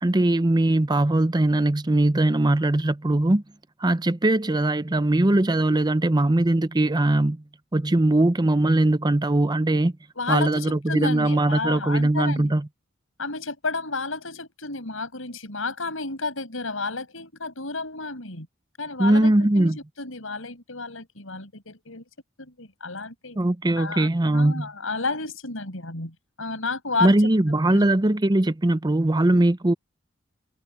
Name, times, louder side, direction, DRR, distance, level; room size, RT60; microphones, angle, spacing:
voice 1, 0.0-3.4 3.8-7.4 7.7-9.9 10.3-12.6 19.0-19.8 23.4-24.7 27.0-29.7, right 1 dB, 20° right, 0.7 m, -20 dB
voice 2, 10.2-12.5 13.2-18.5 18.8-22.0 22.4-23.4 23.8-27.1 27.7-27.9, left 3 dB, 80° left, 6.4 m, -31 dB
head